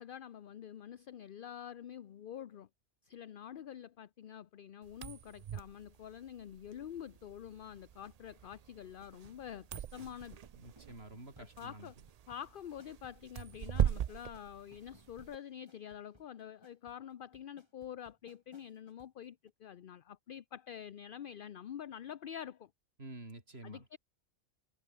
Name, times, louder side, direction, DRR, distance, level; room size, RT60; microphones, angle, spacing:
voice 1, 0.0-2.7 3.0-10.4 11.4-12.0 12.3-22.7 23.6-24.0, left 9 dB, 55° left, 0.7 m, -47 dB
sound 1, 4.9-15.4, right 10 dB, 75° right, 0.3 m, -40 dB
sound 2, 7.5-19.2 19.5-19.6, right 1 dB, 20° right, 6.9 m, -66 dB
voice 2, 10.6-11.9 23.0-23.9, right 2 dB, 60° right, 5.2 m, -50 dB
omnidirectional pair, 1.2 m